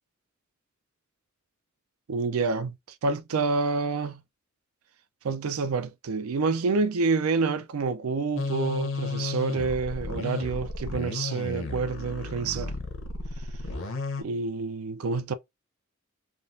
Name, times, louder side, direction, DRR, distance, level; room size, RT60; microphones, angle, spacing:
voice 1, 2.1-2.8 3.0-4.2 5.2-12.7 14.2-15.3, right 4 dB, 90° right, 0.5 m, -28 dB
sound 1, 8.4-14.2, left 3 dB, 65° left, 0.8 m, -33 dB
3.7 x 2.4 x 2.5 m
head